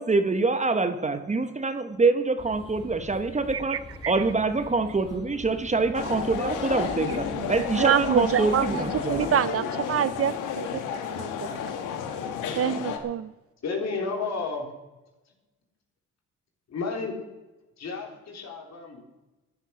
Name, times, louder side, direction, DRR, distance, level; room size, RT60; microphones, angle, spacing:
voice 1, 0.0-9.3, right 3 dB, 25° right, 10 dB, 1.0 m, -25 dB
sound 1, 2.4-9.3, left 2 dB, 20° left, 2.7 m, -44 dB
voice 2, 3.7-4.1 7.4-7.5 7.8-11.3 12.6-13.3, right 9 dB, 50° right, 16 dB, 0.6 m, -26 dB
sound 2, 5.9-13.0, left 7 dB, 90° left, 1.6 m, -32 dB
voice 3, 13.6-14.7 15.2-15.3 16.7-17.2 17.8-19.0, left 4 dB, 60° left, 1 dB, 3.9 m, -32 dB
13.0 x 11.0 x 6.5 m, 1.1 s
cardioid pair, 90°, 30 cm